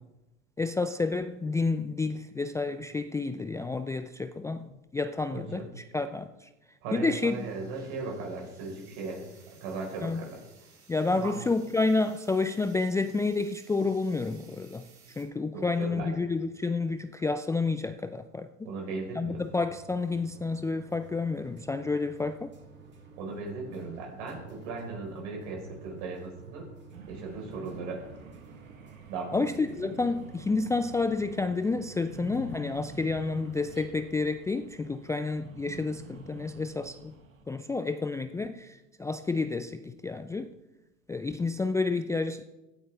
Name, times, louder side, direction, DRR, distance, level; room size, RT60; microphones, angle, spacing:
voice 1, 0.6-5.7 5.9-6.5 6.9-7.3 10.0-10.3 10.9-14.9 15.2-18.7 19.2-22.5 29.3-37.1 37.5-40.5 41.1-42.4, left 3 dB, 10° left, 0.4 m, -30 dB
voice 2, 5.3-5.7 6.8-9.3 9.6-10.4 11.1-11.3 15.5-16.2 18.6-19.4 23.2-26.7 27.1-28.0 29.1-29.4, right 3 dB, 60° right, 4.7 m, -37 dB
sound 1, 7.0-15.2, right 5 dB, 45° right, 5.6 m, -59 dB
sound 2, 19.4-33.8, right 5 dB, 25° right, 3.1 m, -51 dB
sound 3, 26.9-37.4, right 2 dB, 85° right, 1.6 m, -49 dB
16.0 x 12.0 x 3.5 m
hypercardioid pair, 80°, 40 cm